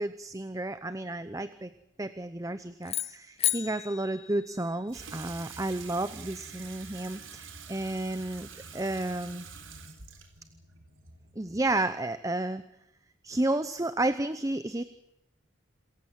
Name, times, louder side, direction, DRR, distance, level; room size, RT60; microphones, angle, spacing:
voice 1, 0.0-1.7 2.0-9.5 11.4-12.6 13.2-14.8, right 2 dB, 15° right, 12 dB, 0.8 m, -32 dB
sound 1, 2.8-5.2, left 12 dB, 30° left, 0.9 m, -33 dB
Water tap faucet / Sink (filling or washing), 4.9-11.9, right 5 dB, 85° right, 3.9 m, -46 dB
27.5 x 15.0 x 7.6 m, 0.84 s
head